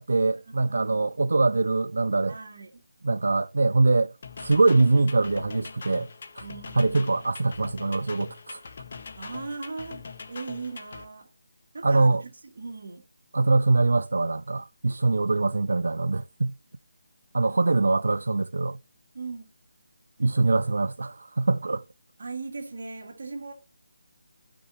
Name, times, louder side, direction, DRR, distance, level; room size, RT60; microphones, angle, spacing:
voice 1, 0.0-2.4 3.0-4.1 4.4-6.1 6.4-6.5 6.7-8.6 11.8-12.2 13.3-16.5 17.3-18.8 20.2-21.8, right 3 dB, 75° right, 0.3 m, -23 dB
voice 2, 0.7-1.1 2.3-2.8 6.4-7.3 9.2-11.3 11.7-12.3 12.6-13.0 19.1-19.5 22.2-23.5, right 4 dB, 50° right, 2.2 m, -38 dB
sound 1, 4.2-11.1, left 5 dB, 40° left, 0.9 m, -42 dB
12.0 x 6.0 x 3.1 m
hypercardioid pair, 175°, 0 cm